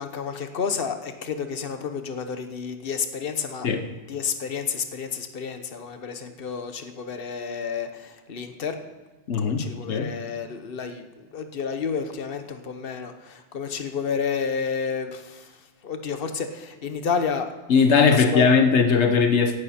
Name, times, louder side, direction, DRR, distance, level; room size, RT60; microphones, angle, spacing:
voice 1, 0.0-3.7 4.1-8.8 9.4-15.5 15.8-17.5 18.0-18.5, left 6 dB, 55° left, 1.3 m, -30 dB
voice 2, 9.3-10.2 17.7-19.6, left 5 dB, 85° left, 1.3 m, -19 dB
16.5 x 12.0 x 4.3 m
omnidirectional pair, 1.1 m